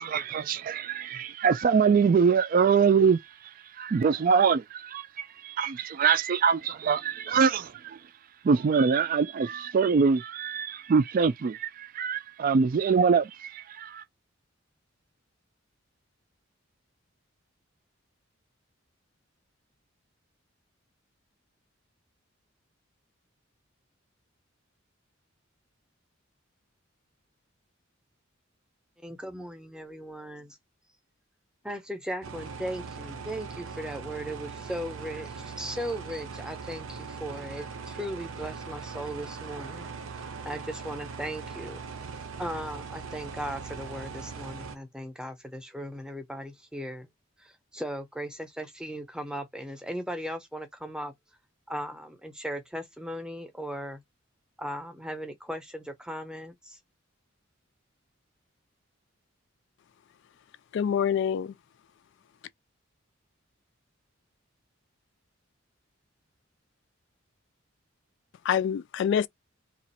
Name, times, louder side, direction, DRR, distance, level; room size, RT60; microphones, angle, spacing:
voice 1, 0.0-8.0 8.4-14.0, right 6 dB, 45° right, 0.3 m, -24 dB
voice 2, 29.0-30.6 31.6-39.9 40.4-41.8 42.1-47.1 47.4-51.1 51.7-54.0 54.6-56.8, equal, 5° right, 0.7 m, -37 dB
sound 1, 32.2-44.8, right 5 dB, 85° right, 0.8 m, -40 dB
voice 3, 60.7-61.6 68.4-69.3, left 8 dB, 60° left, 0.3 m, -26 dB
3.0 x 2.4 x 4.2 m
head